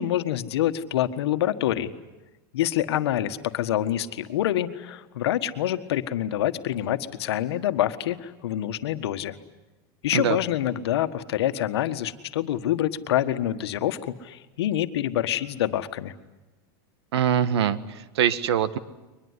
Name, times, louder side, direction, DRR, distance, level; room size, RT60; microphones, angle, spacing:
voice 1, 0.0-1.9 2.5-9.4 10.0-16.1, left 12 dB, 80° left, 10 dB, 1.5 m, -26 dB
voice 2, 17.1-18.8, right 9 dB, 85° right, 15 dB, 1.5 m, -23 dB
23.0 x 21.0 x 9.8 m, 1.1 s
supercardioid pair, 160°, 13 cm